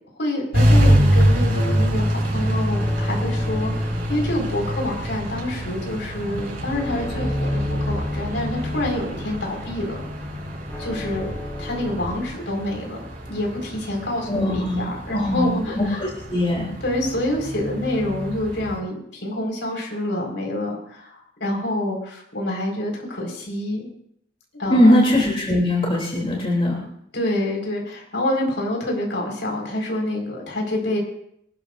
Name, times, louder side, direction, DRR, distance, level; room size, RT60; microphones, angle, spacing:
voice 1, 0.2-10.0 10.8-11.3 11.6-13.0 13.3-16.0 16.8-21.1 21.4-23.9 24.5-25.0 27.1-31.0, left 1 dB, 75° left, 0 dB, 5.0 m, -27 dB
sound 1, 0.5-18.8, equal, 55° right, 6.4 m, -25 dB
sound 2, 2.7-12.3, left 1 dB, 15° left, 7.5 m, -39 dB
voice 2, 14.3-14.8 15.1-16.7 24.7-26.8, left 1 dB, 35° left, -3 dB, 3.2 m, -20 dB
27.0 x 12.5 x 2.6 m, 0.70 s
head